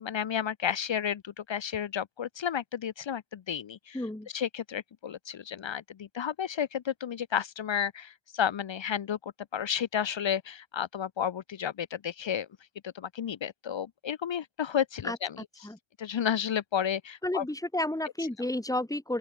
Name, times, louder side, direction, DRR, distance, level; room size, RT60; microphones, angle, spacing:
voice 1, 0.0-4.0 4.3-12.5 12.8-15.3 16.0-17.4, left 8 dB, 65° left, 1.1 m, -32 dB
voice 2, 3.9-4.3 15.0-15.2 15.6-15.8 17.2-19.2, left 1 dB, 5° left, 2.0 m, -31 dB
open air
cardioid pair, 50°, 48 cm